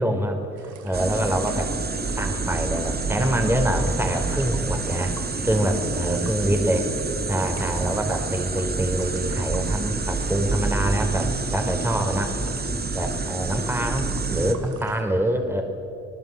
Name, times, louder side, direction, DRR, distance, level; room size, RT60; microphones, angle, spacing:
voice 1, 0.0-1.7 2.2-5.1 5.4-6.9 7.3-12.3 12.9-15.6, right 1 dB, 10° right, 4 dB, 4.2 m, -25 dB
sound 1, 0.6-15.0, right 7 dB, 85° right, 2.5 m, -46 dB
sound 2, 0.9-14.5, right 3 dB, 30° right, 2.4 m, -28 dB
27.0 x 19.5 x 8.2 m, 2.6 s
cardioid pair, 90°, 30 cm